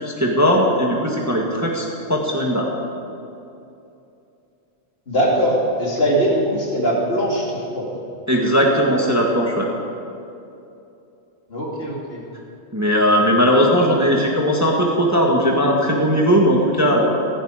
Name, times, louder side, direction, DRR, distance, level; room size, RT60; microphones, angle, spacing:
voice 1, 0.0-2.7 8.3-9.7 12.7-17.1, equal, 15° right, -1 dB, 1.6 m, -18 dB
voice 2, 5.1-7.9 11.5-12.2, equal, 50° left, -3 dB, 3.0 m, -21 dB
16.0 x 16.0 x 5.0 m, 2.7 s
omnidirectional pair, 1.3 m